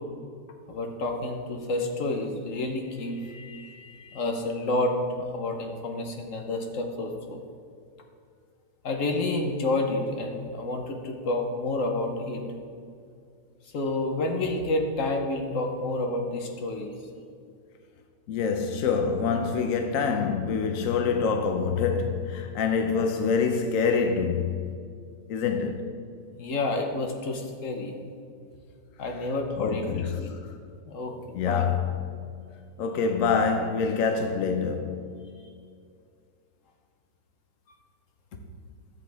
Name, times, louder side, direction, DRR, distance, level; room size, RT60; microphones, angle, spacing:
voice 1, 0.7-5.0 5.3-7.4 8.8-12.4 13.7-16.9 26.3-27.9 29.0-30.3 30.9-31.7, left 2 dB, 50° left, 1.2 m, -29 dB
voice 2, 18.3-24.7 25.3-25.9 29.6-30.4 31.3-31.9 32.8-35.2, left 5 dB, 70° left, 0.8 m, -26 dB
13.5 x 7.4 x 3.4 m
omnidirectional pair, 2.0 m